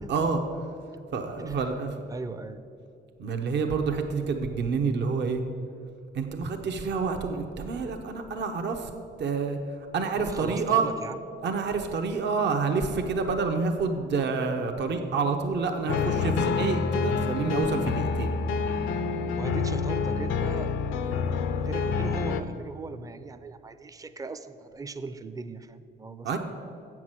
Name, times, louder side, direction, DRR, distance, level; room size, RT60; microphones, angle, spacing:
voice 1, 0.1-0.4 1.1-2.0 3.2-5.4 6.1-8.9 9.2-10.9 11.4-18.3 26.2-26.4, right 4 dB, 60° right, 5 dB, 0.9 m, -28 dB
voice 2, 2.1-2.6 10.2-11.2 19.3-20.7 21.6-26.4, right 3 dB, 15° right, 11 dB, 0.5 m, -38 dB
sound 1, 15.9-22.4, left 5 dB, 85° left, 0.6 m, -27 dB
8.0 x 6.1 x 7.5 m, 2.5 s
cardioid pair, 90°, 20 cm